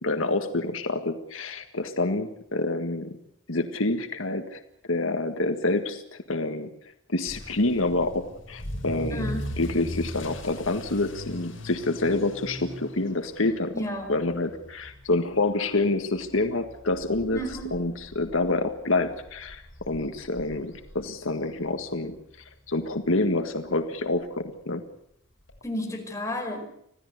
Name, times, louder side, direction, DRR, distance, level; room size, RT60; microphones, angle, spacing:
voice 1, 0.0-3.2 3.5-4.6 4.9-6.7 7.1-9.3 9.6-13.7 14.1-22.2 22.7-24.8, left 2 dB, 85° left, 7 dB, 1.7 m, -27 dB
Motor vehicle (road) / Accelerating revving vroom, 7.3-22.1 22.4-22.8 23.3-23.4 23.7-23.8 24.1-24.2 25.5-25.6, left 1 dB, 70° left, 6.8 m, -40 dB
voice 2, 9.1-9.5 13.7-14.1 17.3-17.8 25.6-26.7, equal, 15° left, 2 dB, 5.1 m, -32 dB
26.5 x 16.5 x 8.1 m, 0.75 s
head